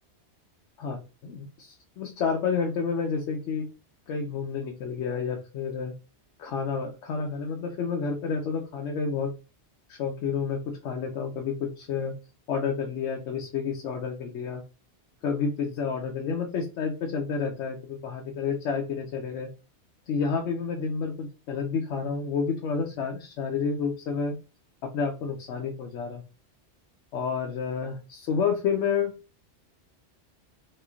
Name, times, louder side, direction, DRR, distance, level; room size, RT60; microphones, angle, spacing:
voice 1, 0.8-3.7 4.1-5.9 6.4-9.3 9.9-12.1 12.5-14.6 15.2-19.5 20.1-24.4 24.8-26.2 27.1-29.1, left 5 dB, 85° left, 3 dB, 0.9 m, -30 dB
3.0 x 3.0 x 2.4 m, 0.31 s
omnidirectional pair, 1.2 m